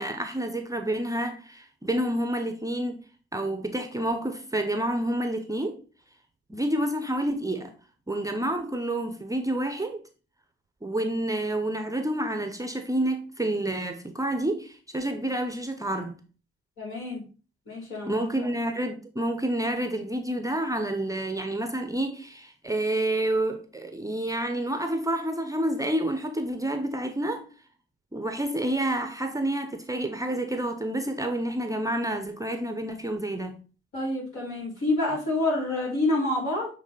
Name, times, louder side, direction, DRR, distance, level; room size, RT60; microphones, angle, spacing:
voice 1, 0.0-3.0 3.3-5.8 6.5-7.7 8.1-10.0 10.8-16.2 18.1-27.5 28.1-33.6, right 1 dB, 10° right, 0.8 m, -29 dB
voice 2, 16.8-17.2 17.7-18.2 33.9-36.7, left 2 dB, 65° left, 3.7 m, -27 dB
7.3 x 3.4 x 3.9 m
figure-of-eight pair, 45°, 29 cm